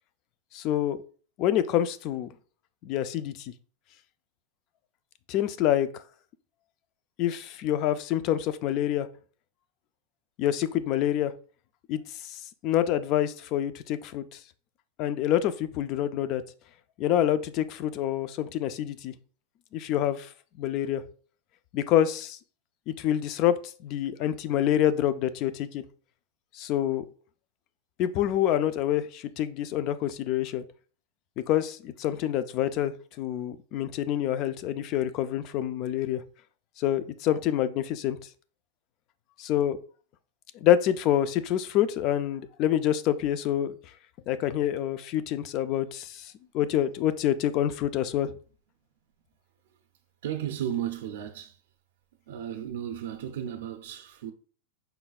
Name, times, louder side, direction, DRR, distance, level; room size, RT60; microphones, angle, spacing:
voice 1, 0.5-1.0 1.4-2.3 2.8-3.5 5.3-6.0 7.2-9.1 10.4-11.3 11.9-12.0 12.3-14.3 15.0-16.4 17.0-19.1 19.7-20.3 20.6-21.0 21.7-22.4 22.9-25.8 26.5-27.1 28.0-30.6 31.5-36.2 36.8-38.2 39.4-39.8 40.6-43.7 44.3-48.3, left 11 dB, 40° left, 0.4 m, -27 dB
voice 2, 50.2-51.6 52.3-54.3, right 10 dB, 75° right, 0.5 m, -34 dB
5.4 x 3.9 x 2.3 m
supercardioid pair, 155°, 0 cm